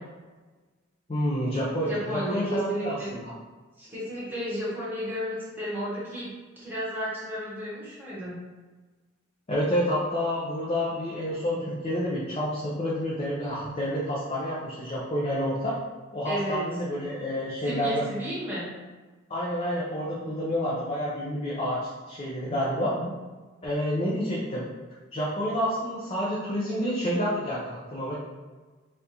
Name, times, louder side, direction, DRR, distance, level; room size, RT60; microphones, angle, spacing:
voice 1, 1.1-3.3 9.5-15.7 16.1-18.0 19.3-22.9 23.6-24.7 25.1-28.1, equal, 30° left, -7 dB, 0.5 m, -29 dB
voice 2, 1.9-3.2 3.8-6.3 6.6-8.3 16.2-16.6 17.6-18.7 20.2-20.6 22.5-23.1, equal, 10° right, -8 dB, 1.1 m, -33 dB
3.4 x 2.6 x 2.9 m, 1.3 s
head